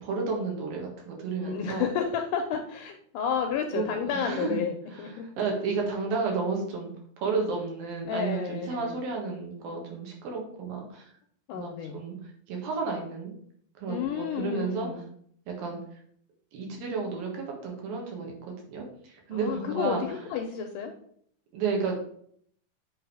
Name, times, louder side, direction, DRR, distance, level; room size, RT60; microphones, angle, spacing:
voice 1, 0.0-1.9 3.7-4.6 4.9-6.9 7.2-11.1 11.5-12.2 12.5-13.3 13.8-15.0 15.5-16.0 16.5-20.2 21.5-22.0, right 4 dB, 75° right, 0 dB, 3.3 m, -32 dB
voice 2, 1.4-5.3 8.1-8.9 11.5-12.0 13.9-15.1 19.3-20.9, left 7 dB, 80° left, 4 dB, 1.9 m, -31 dB
7.9 x 3.6 x 4.8 m, 0.64 s
omnidirectional pair, 4.2 m